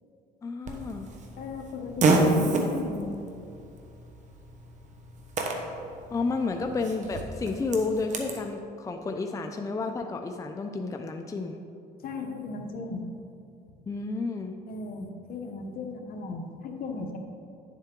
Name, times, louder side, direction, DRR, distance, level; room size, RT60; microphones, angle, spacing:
voice 1, 0.4-1.1 6.1-11.6 13.9-14.6, left 3 dB, 20° left, 5 dB, 0.5 m, -31 dB
Fart, 0.6-8.4, right 2 dB, 45° right, 1.2 m, -30 dB
voice 2, 1.4-3.1 12.0-13.1 14.7-17.2, left 3 dB, 60° left, 3 dB, 1.1 m, -36 dB
9.8 x 7.4 x 3.8 m, 2.6 s
cardioid pair, 110°, 17 cm